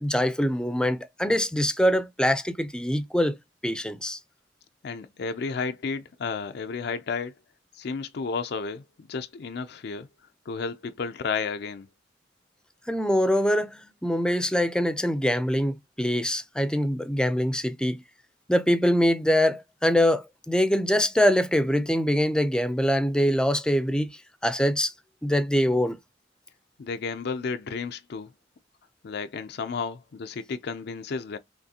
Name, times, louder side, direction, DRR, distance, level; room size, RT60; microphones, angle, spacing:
voice 1, 0.0-3.3 3.6-4.2 12.9-18.0 18.5-24.1 24.4-24.9 25.2-26.0, equal, 5° left, 0.5 m, -24 dB
voice 2, 4.8-7.4 7.7-10.1 10.5-11.9 26.8-28.3 29.0-31.4, left 5 dB, 60° left, 0.4 m, -32 dB
5.8 x 3.2 x 2.8 m
head